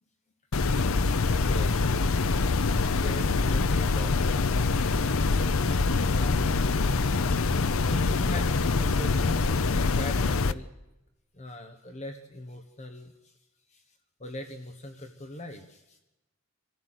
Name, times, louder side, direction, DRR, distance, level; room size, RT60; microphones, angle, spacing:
sound 1, 0.5-10.5, left 4 dB, 75° left, 0.7 m, -25 dB
voice 1, 1.2-2.2 2.9-6.9 7.8-10.7 11.3-13.4 13.7-16.0, left 1 dB, 30° left, 6 dB, 1.3 m, -40 dB
26.0 x 15.5 x 8.0 m, 0.98 s
head